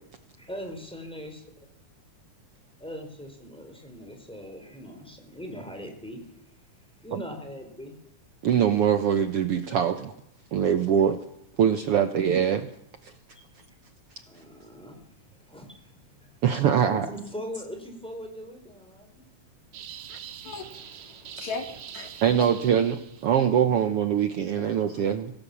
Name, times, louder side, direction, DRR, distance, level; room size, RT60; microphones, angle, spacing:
voice 1, 0.4-1.4 2.8-8.0 14.3-15.0 15.3-19.3, equal, ahead, 4.2 m, -41 dB
voice 2, 8.4-10.1 10.5-11.2 11.6-12.7 13.0-13.1 16.4-17.1 22.2-25.3, right 8 dB, 65° right, 1.7 m, -23 dB
sound 1, 19.7-23.4, right 9 dB, 80° right, 2.9 m, -43 dB
voice 3, 20.4-22.5 24.6-25.1, left 4 dB, 70° left, 3.2 m, -39 dB
24.5 x 17.5 x 7.2 m
omnidirectional pair, 3.4 m